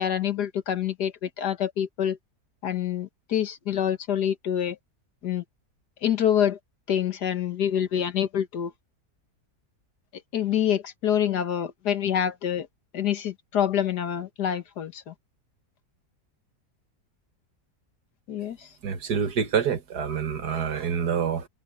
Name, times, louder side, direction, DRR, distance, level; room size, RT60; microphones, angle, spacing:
voice 1, 0.0-2.2 2.6-4.8 5.2-5.4 6.0-6.6 6.9-8.7 10.3-12.7 12.9-15.1 18.3-18.7, left 9 dB, 75° left, 2.0 m, -26 dB
voice 2, 18.8-21.5, right 7 dB, 70° right, 2.1 m, -27 dB
open air
omnidirectional pair, 1.8 m